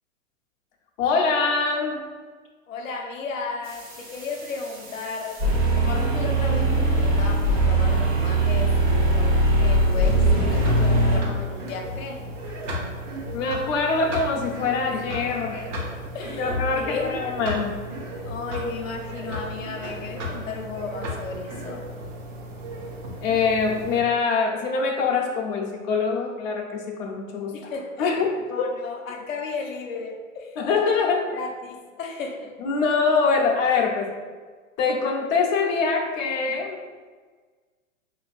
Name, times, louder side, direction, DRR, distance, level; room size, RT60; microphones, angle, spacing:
voice 1, 1.0-2.0 10.5-10.8 13.3-15.7 16.4-17.7 23.2-27.5 28.0-28.7 30.6-31.3 32.6-34.1 34.8-36.8, left 4 dB, 40° left, 0 dB, 0.7 m, -24 dB
voice 2, 2.7-5.4 5.7-12.2 14.9-15.1 16.1-17.2 18.3-21.9 27.5-30.6 31.3-32.6, left 4 dB, 80° left, 1 dB, 0.7 m, -34 dB
sound 1, 3.6-11.2, right 1 dB, 30° right, 0.9 m, -21 dB
sound 2, 10.5-24.0, equal, 65° right, 1.1 m, -34 dB
5.6 x 2.6 x 2.4 m, 1.4 s
hypercardioid pair, 125°, 39 cm